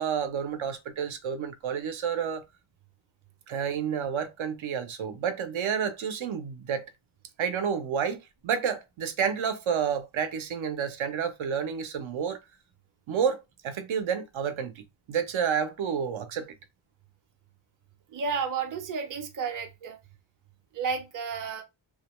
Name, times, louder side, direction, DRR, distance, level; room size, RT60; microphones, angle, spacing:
voice 1, 0.0-2.4 3.5-6.9 7.4-12.4 13.1-14.8 15.1-16.5, right 7 dB, 85° right, 0.7 m, -30 dB
voice 2, 18.1-20.0 20.7-21.6, right 5 dB, 45° right, 0.6 m, -32 dB
2.4 x 2.2 x 2.9 m
wide cardioid pair, 155°, 47 cm